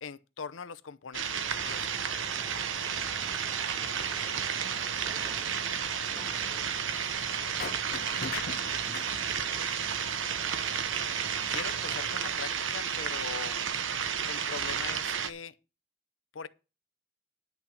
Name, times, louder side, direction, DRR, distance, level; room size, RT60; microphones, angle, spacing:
voice 1, 0.0-2.1 11.5-13.6 14.3-15.5 16.3-16.5, left 6 dB, 80° left, 0.7 m, -41 dB
sound 1, 1.1-15.3, right 7 dB, 75° right, 1.0 m, -32 dB
sound 2, 1.5-12.3, right 1 dB, 10° right, 2.4 m, -48 dB
voice 2, 3.4-3.9 4.2-6.9 7.5-7.7 8.1-9.3 9.8-10.5, right 1 dB, 50° right, 7.8 m, -55 dB
sound 3, 7.6-9.1, left 5 dB, 50° left, 0.7 m, -38 dB
10.0 x 6.1 x 7.2 m
head